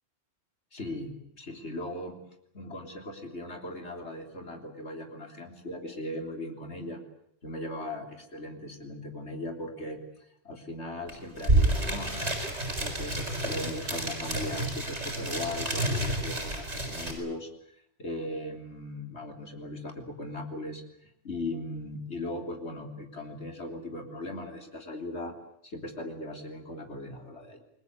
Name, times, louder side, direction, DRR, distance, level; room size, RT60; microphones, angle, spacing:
voice 1, 0.7-2.2 2.5-7.0 7.4-25.4 25.6-27.6, left 1 dB, 80° left, 4 dB, 3.8 m, -38 dB
sound 1, 11.1-11.2 11.4-17.1, right 1 dB, 85° right, 7.1 m, -29 dB
28.5 x 21.5 x 8.3 m, 0.70 s
omnidirectional pair, 1.1 m